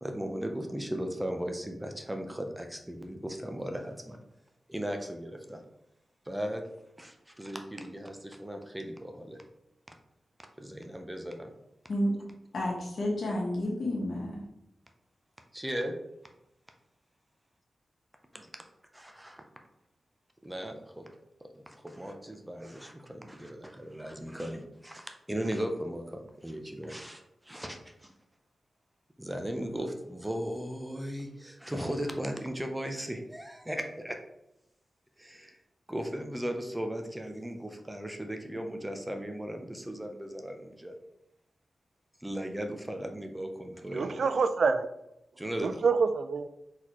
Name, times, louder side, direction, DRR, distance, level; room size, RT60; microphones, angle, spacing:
voice 1, 0.0-4.2 4.7-5.6 6.3-6.6 7.0-9.4 10.6-11.5 15.5-15.9 18.3-18.5 18.9-19.4 20.4-21.1 21.5-28.1 29.2-34.2 35.2-35.6 35.9-40.9 42.2-44.2 45.4-45.8, equal, 10° right, 4 dB, 0.6 m, -37 dB
voice 2, 12.5-14.4, left 1 dB, 65° left, -3 dB, 1.6 m, -30 dB
voice 3, 43.9-44.9 45.6-46.5, right 5 dB, 70° right, 11 dB, 0.3 m, -26 dB
4.1 x 4.1 x 3.0 m, 0.86 s
cardioid pair, 80°, 0 cm